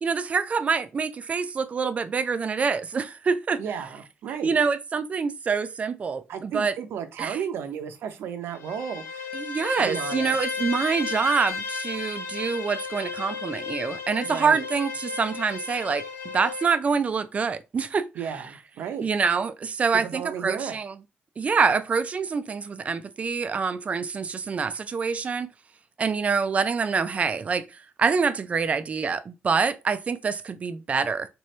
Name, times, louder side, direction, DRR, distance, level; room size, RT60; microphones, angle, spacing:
voice 1, 0.0-3.6 4.4-6.7 7.2-7.4 9.3-18.1 19.0-20.9 21.4-25.5 26.0-27.7 28.0-31.3, right 5 dB, 35° right, 0.4 m, -26 dB
voice 2, 3.6-4.5 6.3-9.4 9.7-10.4 14.2-14.7 18.1-19.1 19.9-20.8, right 8 dB, 90° right, 0.7 m, -34 dB
Bowed string instrument, 8.5-16.8, left 5 dB, 90° left, 0.5 m, -34 dB
3.3 x 3.0 x 3.2 m
cardioid pair, 125°, 4 cm